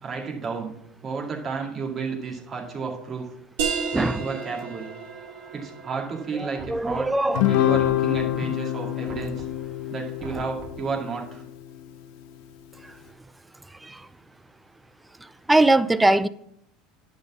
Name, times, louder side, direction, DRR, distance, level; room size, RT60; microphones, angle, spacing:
voice 1, 0.0-0.7 1.0-3.3 3.9-4.9 5.5-7.1 7.5-9.5 9.9-11.4, right 5 dB, 30° right, 2.1 m, -32 dB
sound 1, 3.6-8.9, right 6 dB, 75° right, 2.2 m, -34 dB
voice 2, 6.3-7.5 13.8-14.0 15.5-16.3, right 2 dB, 10° right, 0.4 m, -21 dB
Knock, 6.6-7.3 7.7-8.5 9.1-9.7 10.2-10.9, right 3 dB, 50° right, 1.3 m, -42 dB
Guitar, 7.3-12.0, left 14 dB, 70° left, 0.7 m, -26 dB
10.5 x 4.1 x 7.2 m
supercardioid pair, 120°, 0 cm